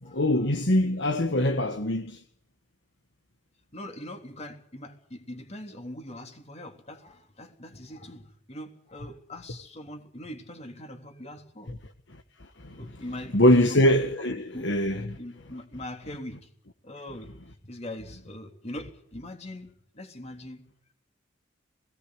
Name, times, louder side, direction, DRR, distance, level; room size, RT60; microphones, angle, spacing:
voice 1, 0.0-2.2 11.7-11.8 12.6-12.8 13.3-15.2, left 1 dB, 60° left, 1.4 m, -23 dB
voice 2, 3.7-11.7 12.7-13.8 14.5-16.5 16.8-17.3 17.6-20.6, left 1 dB, 35° left, 3.4 m, -42 dB
20.5 x 18.0 x 9.6 m
head